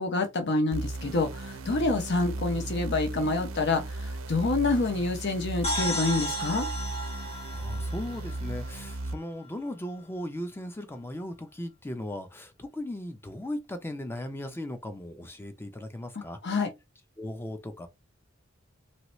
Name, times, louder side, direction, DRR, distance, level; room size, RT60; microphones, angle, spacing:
voice 1, 0.0-6.7 16.4-16.7, left 3 dB, 60° left, 0.7 m, -27 dB
sound 1, 0.7-9.2, right 2 dB, 75° right, 0.5 m, -36 dB
sound 2, 5.6-9.3, equal, 30° left, 1.1 m, -34 dB
voice 2, 7.5-16.4 17.2-17.9, left 1 dB, 10° left, 0.5 m, -37 dB
2.8 x 2.7 x 3.0 m
head